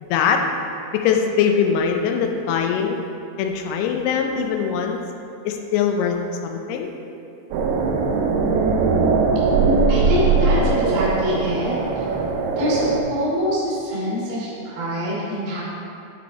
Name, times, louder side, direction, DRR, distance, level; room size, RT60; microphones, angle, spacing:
voice 1, 0.1-0.4 0.9-3.0 3.4-5.0 5.5-6.2 6.4-6.9, left 7 dB, 85° left, 4 dB, 2.7 m, -21 dB
sound 1, 7.5-13.0, right 4 dB, 85° right, 2.7 m, -20 dB
voice 2, 9.9-12.1 12.6-12.8 13.1-15.6, equal, 40° right, -8 dB, 2.5 m, -25 dB
11.0 x 5.7 x 4.2 m, 2.7 s
omnidirectional pair, 4.5 m